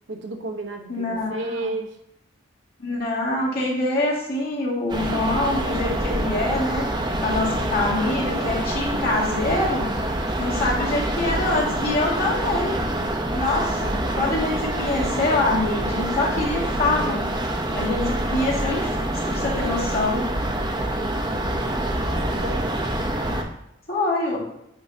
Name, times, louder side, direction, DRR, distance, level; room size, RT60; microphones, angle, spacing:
voice 1, 0.1-2.0 21.9-22.8, right 2 dB, 70° right, 5 dB, 0.9 m, -32 dB
voice 2, 0.9-1.7 2.8-6.9 7.2-9.9 10.4-12.8 13.3-17.2 17.7-18.9 19.3-20.2 23.9-24.4, left 2 dB, 50° left, -5 dB, 2.1 m, -25 dB
sound 1, 4.9-23.4, right 1 dB, 20° right, 0.7 m, -26 dB
8.4 x 4.6 x 2.8 m, 0.81 s
head